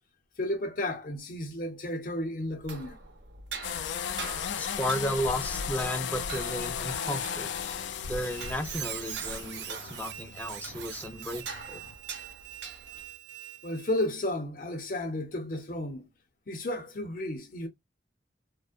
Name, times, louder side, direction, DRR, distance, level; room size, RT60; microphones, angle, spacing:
voice 1, 0.4-3.0 13.6-16.1 16.5-17.7, left 1 dB, 50° left, 0.6 m, -33 dB
sound 1, 2.5-13.2, right 4 dB, 90° right, 0.7 m, -45 dB
sound 2, 3.6-12.0, left 7 dB, 90° left, 0.3 m, -36 dB
voice 2, 4.6-7.5 8.0-11.8, equal, 10° left, 0.4 m, -34 dB
Squeak, 8.1-14.1, right 11 dB, 70° right, 0.4 m, -42 dB
2.5 x 2.1 x 2.4 m
head